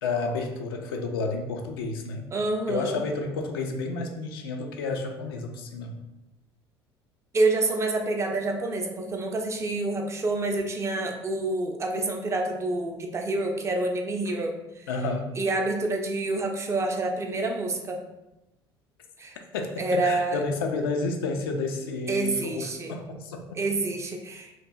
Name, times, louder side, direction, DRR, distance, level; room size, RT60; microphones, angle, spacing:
voice 1, 0.0-2.3 2.7-6.0 14.9-15.3 19.5-23.6, left 3 dB, 65° left, 3 dB, 0.4 m, -31 dB
voice 2, 2.3-3.0 7.3-14.9 15.4-18.0 19.2-19.4 19.8-20.4 22.1-22.9 23.5-24.7, right 2 dB, 20° right, 3 dB, 0.4 m, -28 dB
2.9 x 2.4 x 2.2 m, 0.95 s
figure-of-eight pair, 60°, 13 cm